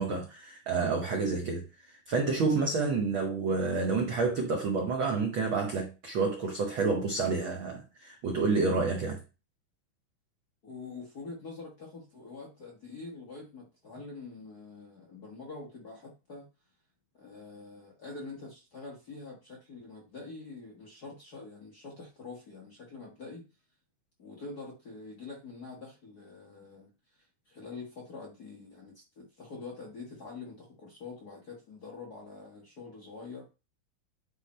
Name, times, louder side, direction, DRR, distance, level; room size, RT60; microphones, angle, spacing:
voice 1, 0.0-1.7 2.1-9.2, right 4 dB, 80° right, 1.1 m, -29 dB
voice 2, 10.6-16.5 17.1-23.4 24.2-33.5, left 3 dB, 50° left, 1.1 m, -45 dB
8.9 x 3.6 x 4.2 m
omnidirectional pair, 3.7 m